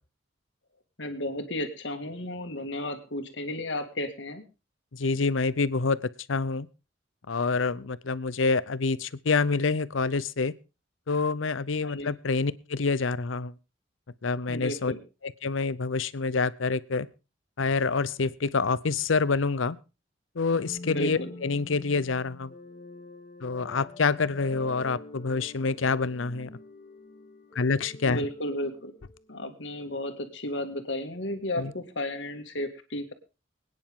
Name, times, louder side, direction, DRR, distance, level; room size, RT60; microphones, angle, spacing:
voice 1, 1.0-4.4 11.8-12.1 14.5-15.0 20.8-21.3 28.0-28.9 29.3-33.1, left 1 dB, 65° left, 6 dB, 2.1 m, -33 dB
voice 2, 4.9-6.0 6.3-6.7 7.3-10.5 11.1-13.5 14.2-14.9 15.2-17.1 17.6-19.8 20.4-22.5 23.4-26.5 27.6-28.3 31.6-31.7, left 4 dB, 85° left, 18 dB, 0.7 m, -27 dB
sound 1, 20.5-29.5, left 2 dB, 35° left, 2.8 m, -46 dB
24.5 x 9.7 x 3.7 m, 0.32 s
head